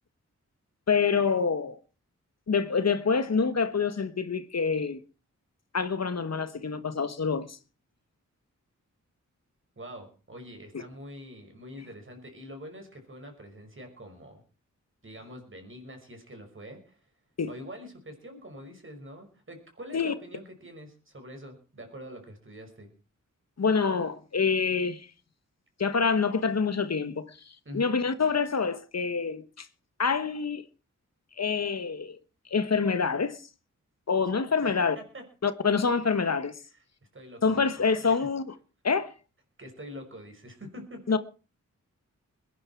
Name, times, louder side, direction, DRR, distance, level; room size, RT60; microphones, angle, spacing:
voice 1, 0.9-1.8 2.5-5.0 5.7-7.6 17.4-17.5 19.9-20.1 23.6-25.1 25.8-27.2 27.7-29.7 30.0-30.6 31.4-32.2 32.5-33.4 34.1-35.0 35.4-36.5 37.4-38.4 38.8-39.1 41.1-41.2, left 5 dB, 55° left, 1.3 m, -26 dB
voice 2, 9.8-14.4 15.0-17.1 17.5-22.9 27.6-28.0 34.3-35.3 36.0-36.3 37.1-37.7 38.0-38.3 39.6-41.2, equal, 40° right, 5.9 m, -45 dB
21.5 x 11.0 x 4.6 m
wide cardioid pair, 70°, 31 cm